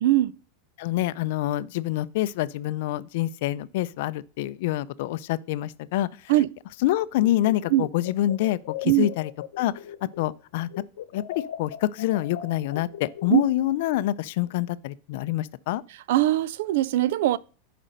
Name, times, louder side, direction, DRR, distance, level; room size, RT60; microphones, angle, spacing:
voice 1, 0.0-0.4 6.3-6.5 7.7-7.9 8.8-9.1 13.3-13.4 16.1-17.4, right 15 dB, 70° right, 0.4 m, -21 dB
voice 2, 0.8-6.1 6.8-9.3 9.6-9.7 10.0-10.7 11.1-11.2 11.6-15.8, left 14 dB, 65° left, 0.4 m, -26 dB
sound 1, 7.1-10.4 10.7-13.7, left 11 dB, 85° left, 0.9 m, -40 dB
9.9 x 5.1 x 5.2 m
supercardioid pair, 135°, 0 cm